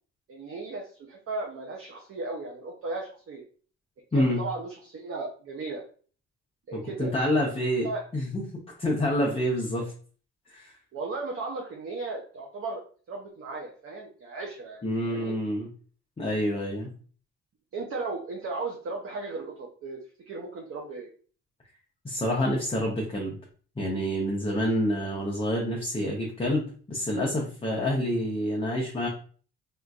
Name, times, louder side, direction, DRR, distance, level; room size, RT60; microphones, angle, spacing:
voice 1, 0.3-3.4 4.1-5.8 6.7-7.5 7.8-8.0 10.9-12.8 13.1-15.4 17.7-20.0 20.3-21.1, right 3 dB, 50° right, 0 dB, 0.6 m, -36 dB
voice 2, 6.7-7.9 8.1-8.4 8.8-9.9 10.5-10.7 14.8-15.7 16.2-16.9 22.0-23.4 23.8-29.1, equal, 20° left, -2 dB, 0.7 m, -27 dB
3.7 x 2.5 x 2.3 m, 0.43 s
cardioid pair, 90°, 30 cm